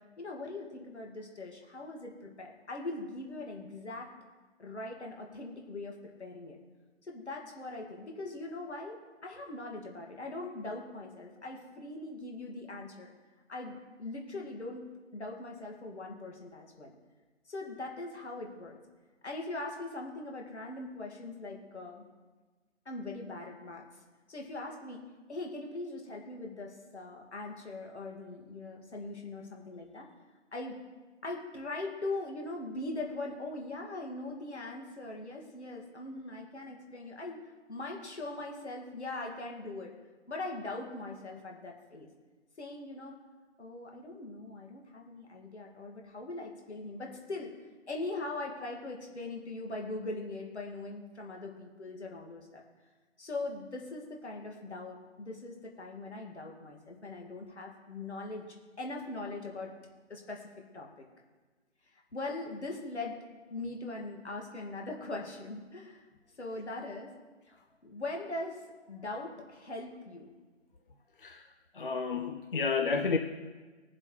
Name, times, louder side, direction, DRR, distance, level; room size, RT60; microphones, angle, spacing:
voice 1, 0.2-4.1 4.6-6.6 7.0-13.1 13.5-17.0 17.5-18.8 19.2-22.1 22.9-23.8 24.3-25.0 25.3-30.1 30.5-30.8 31.2-37.4 37.7-39.9 40.3-42.1 42.6-43.2 43.6-47.5 47.9-52.6 53.2-58.4 58.8-59.7 60.1-60.5 60.7-61.1 62.1-63.2 63.5-66.0 66.4-67.1 67.5-68.6 68.9-70.3, left 2 dB, 60° left, 0 dB, 2.3 m, -41 dB
voice 2, 71.7-73.2, left 5 dB, 45° left, 5 dB, 0.6 m, -30 dB
21.0 x 7.4 x 3.3 m, 1.3 s
figure-of-eight pair, 160°, 37 cm